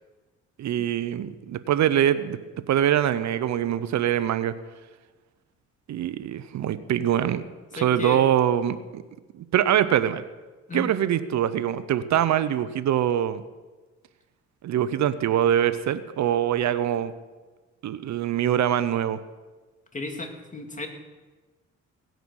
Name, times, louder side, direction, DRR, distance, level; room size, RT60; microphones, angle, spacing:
voice 1, 0.6-2.4 2.7-4.5 5.9-7.4 7.7-9.0 9.3-10.2 10.7-13.4 14.6-17.1 17.8-19.2, right 10 dB, 65° right, 13 dB, 0.8 m, -23 dB
voice 2, 7.7-8.2 10.7-10.9 19.9-20.9, left 2 dB, 25° left, 3 dB, 2.5 m, -34 dB
18.0 x 9.2 x 6.3 m, 1.3 s
cardioid pair, 90°, 30 cm